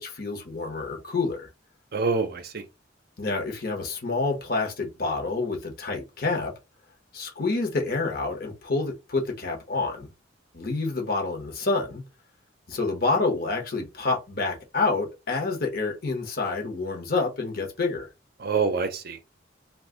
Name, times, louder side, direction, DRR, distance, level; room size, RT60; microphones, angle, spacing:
voice 1, 0.0-1.5 3.2-6.5 7.1-10.1 10.5-12.0 12.7-18.1, left 3 dB, 50° left, 1.0 m, -28 dB
voice 2, 1.9-2.6 18.4-19.2, right 4 dB, 50° right, 0.5 m, -26 dB
2.6 x 2.4 x 3.7 m
head